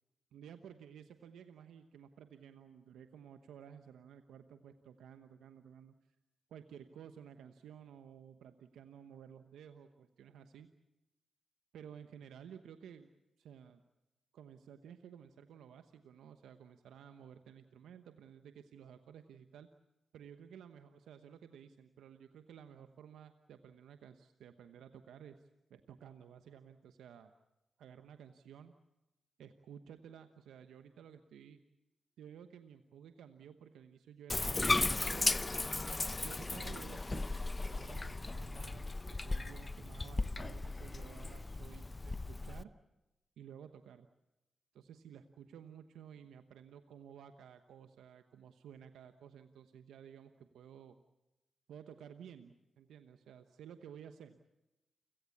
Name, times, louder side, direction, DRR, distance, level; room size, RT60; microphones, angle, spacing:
voice 1, 0.3-5.9 6.5-10.7 11.7-13.1 13.4-13.8 14.3-19.7 20.1-27.3 27.8-28.7 29.4-31.6 32.2-35.5 36.2-42.7 43.4-44.1 44.7-51.0 51.7-54.4, right 8 dB, 85° right, 9 dB, 1.0 m, -54 dB
Bathtub (filling or washing), 34.3-42.6, left 2 dB, 30° left, 0.8 m, -36 dB
29.5 x 17.0 x 8.4 m, 0.95 s
supercardioid pair, 40°, 0 cm